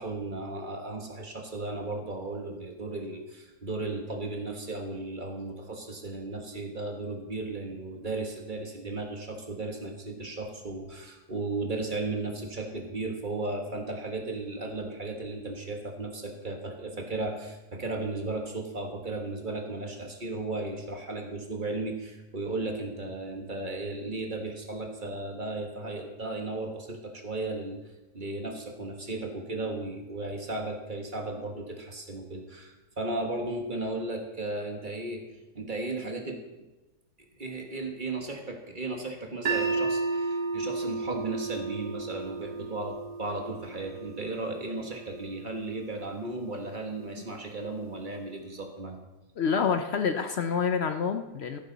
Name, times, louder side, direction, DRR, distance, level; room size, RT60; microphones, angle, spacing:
voice 1, 0.0-27.8 28.1-35.2 35.5-36.4 37.4-49.0, right 2 dB, 30° right, 2 dB, 1.5 m, -35 dB
sound 1, 39.5-45.6, right 3 dB, 75° right, 1.7 m, -33 dB
voice 2, 49.4-51.6, left 6 dB, 65° left, 7 dB, 0.6 m, -27 dB
13.5 x 11.5 x 4.0 m, 1.1 s
omnidirectional pair, 1.8 m